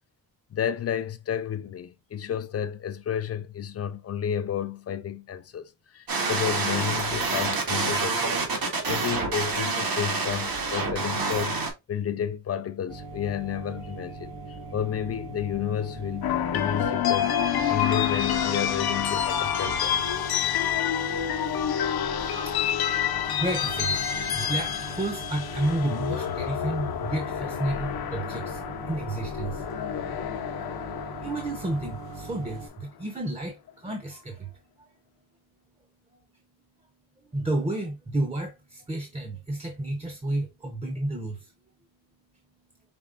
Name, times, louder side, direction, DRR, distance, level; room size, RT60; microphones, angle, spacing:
voice 1, 0.5-8.5 8.8-11.6 11.9-17.4 17.7-20.0, left 9 dB, 40° left, 0.5 m, -31 dB
sound 1, 6.1-11.7, right 3 dB, 65° right, 1.8 m, -27 dB
sound 2, 12.9-32.7, right 3 dB, 50° right, 2.0 m, -40 dB
sound 3, 16.2-32.4, left 9 dB, 75° left, 0.8 m, -28 dB
voice 2, 22.4-29.8 30.6-30.8 31.2-34.9 36.1-36.2 37.3-41.5, right 1 dB, 15° right, 0.7 m, -32 dB
5.2 x 3.9 x 2.5 m
wide cardioid pair, 170°, 37 cm